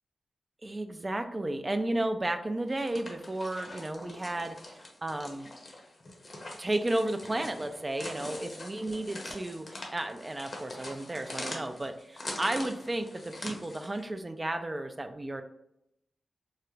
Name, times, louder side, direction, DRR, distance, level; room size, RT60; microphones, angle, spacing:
voice 1, 0.6-5.5 6.6-15.4, right 1 dB, 30° right, 8 dB, 0.3 m, -33 dB
sound 1, 2.7-14.0, left 1 dB, 50° left, 0.7 m, -43 dB
2.3 x 2.1 x 3.1 m, 0.80 s
cardioid pair, 45°, 0 cm